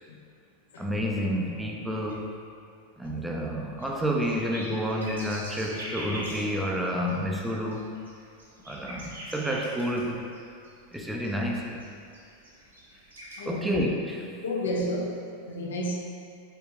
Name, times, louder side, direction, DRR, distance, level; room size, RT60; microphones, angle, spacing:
voice 1, 0.8-2.3 3.0-7.9 8.7-10.3 10.9-11.8 13.5-14.2, equal, 5° right, -1 dB, 0.5 m, -29 dB
sound 1, 3.8-6.6 6.9-7.1 7.4-10.4 10.6-11.9 12.1-13.4, equal, 70° right, 1.0 m, -42 dB
voice 2, 13.4-13.8 14.4-16.0, equal, 65° left, -1 dB, 0.6 m, -31 dB
4.3 x 4.2 x 2.7 m, 2.5 s
figure-of-eight pair, 90°, 0 cm